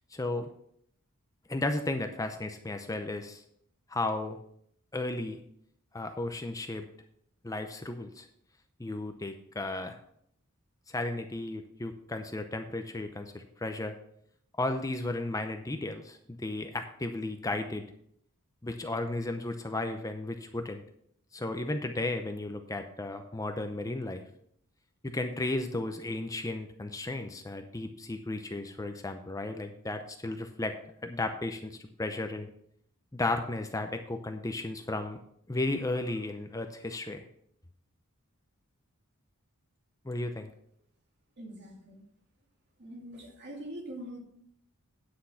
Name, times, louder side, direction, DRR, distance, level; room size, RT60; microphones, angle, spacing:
voice 1, 0.1-0.5 1.5-3.4 3.9-4.4 4.9-5.4 5.9-6.9 7.4-8.3 8.8-10.0 10.9-14.0 14.6-17.8 18.6-20.8 21.3-24.2 25.0-30.7 31.0-32.5 33.1-35.2 35.5-37.2 40.0-40.5, left 2 dB, 15° left, 6 dB, 0.6 m, -34 dB
voice 2, 41.4-42.1 42.8-44.2, right 1 dB, 50° right, 0 dB, 2.6 m, -43 dB
9.7 x 6.5 x 5.7 m, 0.68 s
head